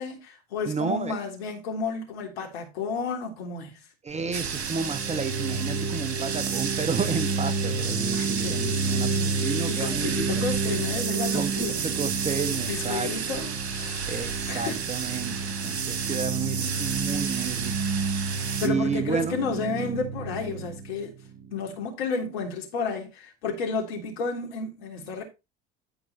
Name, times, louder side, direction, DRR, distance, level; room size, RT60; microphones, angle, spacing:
voice 1, 0.0-3.8 8.1-9.4 9.7-11.9 12.6-14.2 14.5-14.8 18.6-21.1 21.5-25.2, left 4 dB, 70° left, 3.5 m, -32 dB
voice 2, 0.7-1.2 4.0-10.4 11.3-13.1 14.1-17.7 18.6-19.4, right 5 dB, 20° right, 1.1 m, -31 dB
sound 1, 4.1-21.7, right 4 dB, 45° right, 6.7 m, -31 dB
sound 2, 4.3-18.7, right 6 dB, 80° right, 1.6 m, -32 dB
13.0 x 4.8 x 4.3 m
figure-of-eight pair, 75°, 32 cm